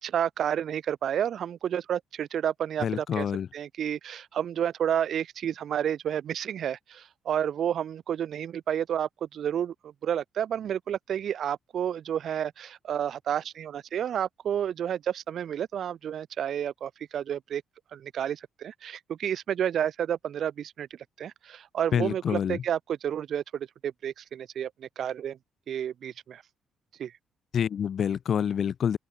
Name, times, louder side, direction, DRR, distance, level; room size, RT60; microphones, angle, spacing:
voice 1, 0.0-3.3 3.5-17.6 17.9-20.9 21.2-25.4 25.7-26.4 27.0-27.1, right 9 dB, 65° right, 4.8 m, -30 dB
voice 2, 2.8-3.5 21.9-22.6 27.5-29.0, left 8 dB, 55° left, 2.6 m, -27 dB
open air
cardioid pair, 90°, 0 cm